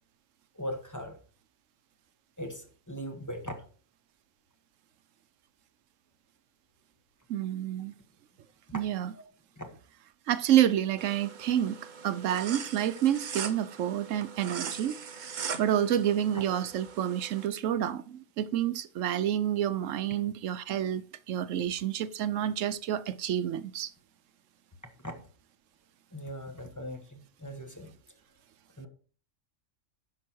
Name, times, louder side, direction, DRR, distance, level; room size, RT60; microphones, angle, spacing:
voice 1, 0.5-1.2 2.4-3.6 9.1-9.2 9.6-9.7 25.0-25.1 26.1-27.9 28.8-28.9, equal, 15° left, 1.4 m, -39 dB
voice 2, 7.3-7.9 8.7-9.1 10.3-11.8 12.0-15.0 15.3-23.9, right 11 dB, 80° right, 1.0 m, -29 dB
sound 1, 11.0-17.5, right 6 dB, 45° right, 0.8 m, -41 dB
10.5 x 6.1 x 4.5 m
omnidirectional pair, 1.3 m